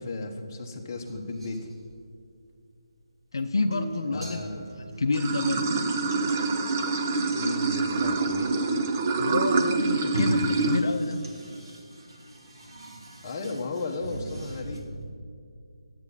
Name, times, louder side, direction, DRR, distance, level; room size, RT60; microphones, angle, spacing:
voice 1, 0.0-1.7 4.1-4.7 7.3-8.6 13.2-14.8, left 3 dB, 25° left, 0 dB, 1.2 m, -35 dB
sound 1, 0.9-2.5 3.0-3.1 3.4-3.7 4.2-5.6 7.6-7.7 8.0-8.3 10.0-15.1, right 1 dB, 70° right, 2.5 m, -39 dB
voice 2, 3.3-4.5 5.0-5.7 9.2-11.3, left 3 dB, 70° left, 7 dB, 0.6 m, -28 dB
sound 2, 3.7-11.7, right 3 dB, 50° right, 1.4 m, -43 dB
Water / Sink (filling or washing), 5.1-10.8, right 3 dB, 25° right, 0.6 m, -26 dB
11.5 x 8.4 x 5.4 m, 2.3 s
figure-of-eight pair, 165°, 3 cm